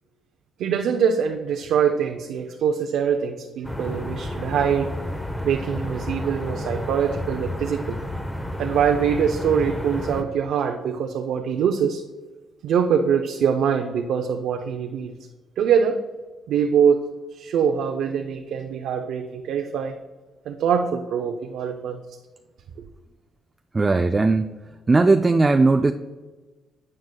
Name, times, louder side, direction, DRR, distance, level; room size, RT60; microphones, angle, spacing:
voice 1, 0.6-4.9 5.4-8.0 8.6-12.0 12.6-15.1 15.6-16.0 16.5-17.0 17.3-19.9 20.5-22.0, right 7 dB, 80° right, 4 dB, 0.5 m, -23 dB
sound 1, 3.6-10.2, left 1 dB, 5° left, 0.8 m, -31 dB
voice 2, 23.7-24.5 24.9-25.9, right 3 dB, 25° right, 8 dB, 0.3 m, -18 dB
9.4 x 8.8 x 2.3 m, 1.3 s
cardioid pair, 90°, 0 cm